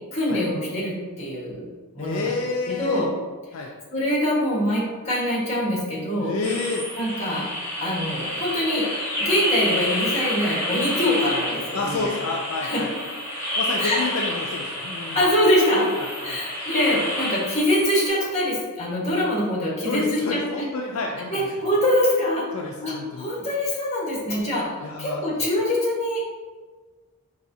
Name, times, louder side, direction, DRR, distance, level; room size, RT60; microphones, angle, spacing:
voice 1, 0.1-1.6 1.9-2.3 2.7-3.1 3.9-6.3 7.0-7.5 7.8-8.9 9.2-12.2 12.6-12.8 13.8-14.0 15.1-15.9 16.2-20.4 21.3-22.4 22.8-24.7 25.0-26.2, left 1 dB, 30° left, -5 dB, 1.3 m, -24 dB
voice 2, 2.0-3.1 3.5-3.7 6.2-6.9 11.7-12.9 13.6-15.2 15.9-16.4 19.8-21.5 22.5-23.3 24.8-25.2, left 3 dB, 65° left, 0 dB, 0.4 m, -29 dB
sound 1, 6.4-18.1, left 1 dB, 10° left, 1.2 m, -29 dB
5.2 x 2.7 x 2.7 m, 1.4 s
head